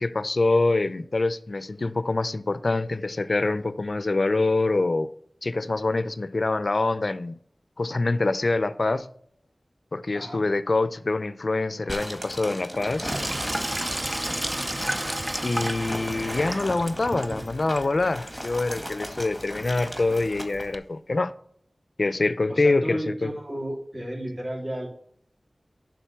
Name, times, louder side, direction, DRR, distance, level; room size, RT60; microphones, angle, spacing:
voice 1, 0.0-5.1 5.4-7.4 7.8-9.1 9.9-13.1 15.4-21.3 22.0-23.3, left 2 dB, 65° left, 0.5 m, -25 dB
voice 2, 10.1-10.4 22.5-24.9, equal, 40° right, 3.4 m, -33 dB
sound 1, 11.9-20.7, equal, ahead, 1.9 m, -37 dB
Sink (filling or washing), 12.9-20.8, right 1 dB, 25° right, 0.6 m, -33 dB
11.0 x 3.9 x 6.8 m
wide cardioid pair, 50°, 0 cm